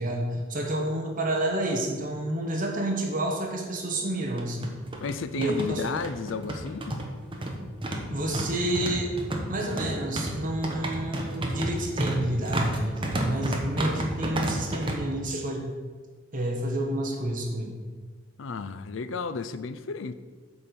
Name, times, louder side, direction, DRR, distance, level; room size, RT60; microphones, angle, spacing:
voice 1, 0.0-4.7 5.3-5.8 8.1-9.2 9.5-15.7 16.3-17.7, right 1 dB, 45° right, 1 dB, 1.2 m, -29 dB
sound 1, 2.9-3.0 3.3-3.4 4.2-15.0, right 1 dB, 25° right, 1.1 m, -31 dB
voice 2, 5.0-7.0 18.4-20.1, left 4 dB, 65° left, 12 dB, 0.5 m, -33 dB
8.5 x 4.4 x 6.9 m, 1.5 s
head